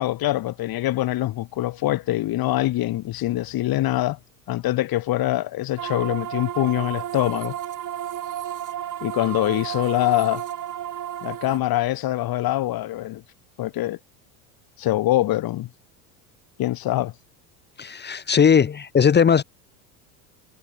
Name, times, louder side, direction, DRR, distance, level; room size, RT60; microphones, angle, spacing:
voice 1, 0.0-4.2 4.5-7.6 9.0-10.4 11.2-13.2 13.6-14.0 14.8-15.7 16.6-17.1, left 15 dB, 45° left, 2.2 m, -24 dB
sound 1, 5.8-11.6, right 11 dB, 40° right, 3.4 m, -32 dB
voice 2, 17.8-19.4, left 7 dB, 20° left, 1.0 m, -18 dB
supercardioid pair, 110°, 49 cm